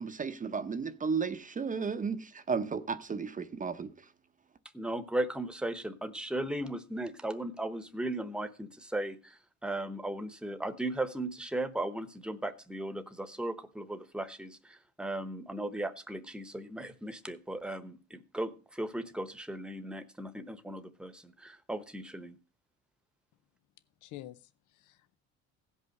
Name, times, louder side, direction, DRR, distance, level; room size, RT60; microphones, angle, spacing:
voice 1, 0.0-4.1, right 5 dB, 25° right, 0.8 m, -34 dB
voice 2, 4.7-22.4, right 1 dB, 5° right, 1.0 m, -37 dB
voice 3, 24.0-25.2, left 14 dB, 80° left, 0.7 m, -49 dB
16.0 x 5.5 x 6.5 m
cardioid pair, 120°, 30 cm